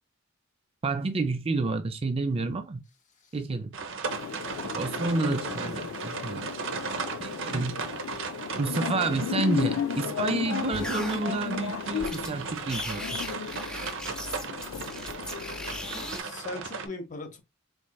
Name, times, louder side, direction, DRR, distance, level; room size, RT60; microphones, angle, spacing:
voice 1, 0.8-2.8 3.3-3.7 4.7-6.6 7.2-7.9 8.6-13.2, right 3 dB, 30° right, 0.4 m, -29 dB
sound 1, 3.7-16.9, right 5 dB, 65° right, 0.7 m, -36 dB
sound 2, 4.0-16.1, left 8 dB, 90° left, 0.3 m, -35 dB
sound 3, 10.7-11.2 12.0-12.3 12.6-16.2, left 1 dB, 5° left, 0.7 m, -37 dB
voice 2, 16.1-17.4, left 2 dB, 40° left, 0.9 m, -39 dB
4.2 x 3.1 x 2.3 m
head